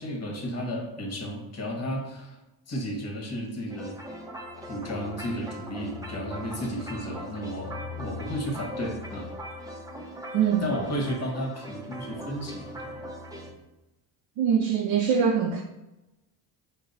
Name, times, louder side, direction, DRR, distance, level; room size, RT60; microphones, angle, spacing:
voice 1, 0.0-2.4 2.7-3.9 4.6-9.3 10.6-13.0, equal, 35° left, -1 dB, 1.2 m, -33 dB
sound 1, 3.7-13.5, equal, 10° right, 0.9 m, -40 dB
voice 2, 14.4-15.6, right 7 dB, 70° right, 2 dB, 0.6 m, -23 dB
4.7 x 2.2 x 4.0 m, 0.98 s
cardioid pair, 95°, 44 cm